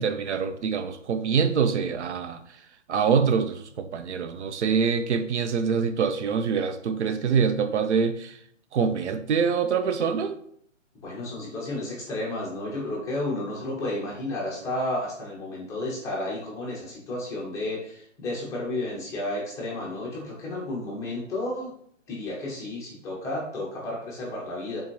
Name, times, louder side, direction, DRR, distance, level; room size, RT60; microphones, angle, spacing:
voice 1, 0.0-2.4 2.9-8.4 8.7-10.4, right 6 dB, 65° right, 0.5 m, -25 dB
voice 2, 11.0-21.7 22.1-24.8, left 1 dB, 10° left, 0.6 m, -32 dB
4.0 x 3.6 x 3.0 m
hypercardioid pair, 140°, 38 cm